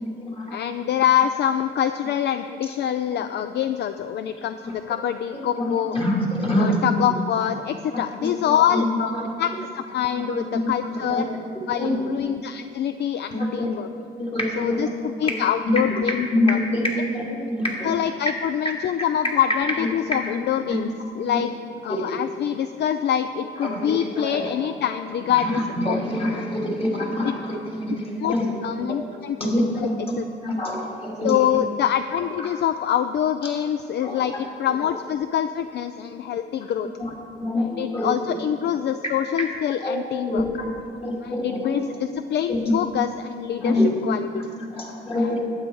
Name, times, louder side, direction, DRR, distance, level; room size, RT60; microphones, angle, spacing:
voice 1, 0.0-0.6 4.6-4.7 5.5-6.8 7.9-8.3 8.7-9.3 10.2-10.3 10.5-10.7 11.1-11.2 11.8-12.0 13.3-13.7 14.2-14.9 15.2-15.3 16.3-17.9 20.1-20.4 20.7-20.8 21.3-21.4 21.9-22.2 23.6-24.5 25.8-28.5 28.9-29.0 29.4-29.9 30.4-31.3 34.0-34.2 37.0-37.1 37.4-38.1 39.8-40.0 40.3-40.5 41.0-41.8 42.5-42.7 43.6-43.9 44.6-45.4, left 1 dB, 30° left, -3 dB, 2.9 m, -25 dB
voice 2, 0.5-6.0 6.6-11.3 11.7-13.9 14.6-16.9 17.8-20.9 21.2-21.5 21.8-26.0 27.2-27.3 28.2-28.4 28.6-29.4 29.8-29.9 30.2-30.3 31.2-36.9 37.8-40.5 41.2-44.5 45.2-45.4, left 9 dB, 60° left, 10 dB, 0.4 m, -25 dB
12.0 x 8.8 x 4.7 m, 2.6 s
cardioid pair, 90°, 20 cm